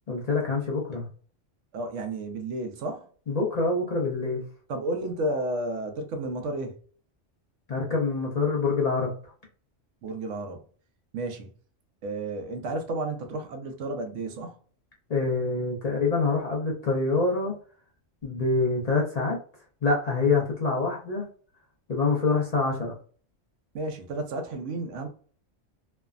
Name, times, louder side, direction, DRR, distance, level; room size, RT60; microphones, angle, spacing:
voice 1, 0.1-1.1 3.3-4.4 7.7-9.3 15.1-17.5 18.2-19.4 19.8-21.2 21.9-23.0, left 3 dB, 45° left, 0.6 m, -26 dB
voice 2, 1.7-3.1 4.7-6.8 10.0-10.6 11.1-11.5 12.0-14.6 23.7-25.1, right 2 dB, 80° right, 1.0 m, -32 dB
3.2 x 2.0 x 2.3 m
omnidirectional pair, 1.3 m